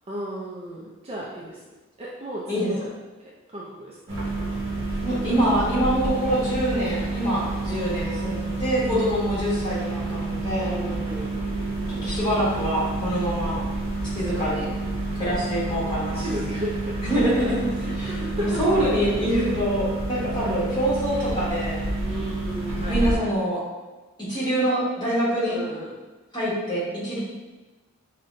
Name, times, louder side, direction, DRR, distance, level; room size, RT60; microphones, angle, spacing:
voice 1, 0.1-1.6 2.0-2.8 3.5-4.3 5.1-5.4 7.7-8.1 10.6-11.3 12.2-12.4 14.2-15.1 16.1-17.1 17.8-18.6 20.4-20.6 22.0-23.4 25.5-26.0, equal, 25° right, -5 dB, 0.4 m, -35 dB
sound 1, 4.1-23.2, right 2 dB, 55° right, 0.8 m, -29 dB
voice 2, 5.0-10.7 12.0-13.6 14.1-14.7 15.1-16.4 17.0-18.1 18.4-21.8 22.9-23.6 24.2-25.6 26.3-27.2, equal, 20° left, -8 dB, 1.3 m, -25 dB
5.3 x 2.2 x 2.5 m, 1.2 s
head